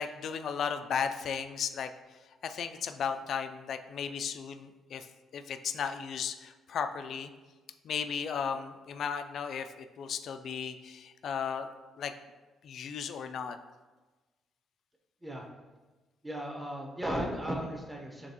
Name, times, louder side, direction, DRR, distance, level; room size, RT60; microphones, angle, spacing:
voice 1, 0.0-1.9 2.4-5.1 5.3-7.3 7.8-11.7 12.0-12.1 12.6-13.6, left 7 dB, 65° left, 8 dB, 0.3 m, -35 dB
voice 2, 16.2-18.3, equal, 15° right, -1 dB, 0.9 m, -35 dB
5.0 x 3.4 x 2.9 m, 1.2 s
cardioid pair, 90°, 0 cm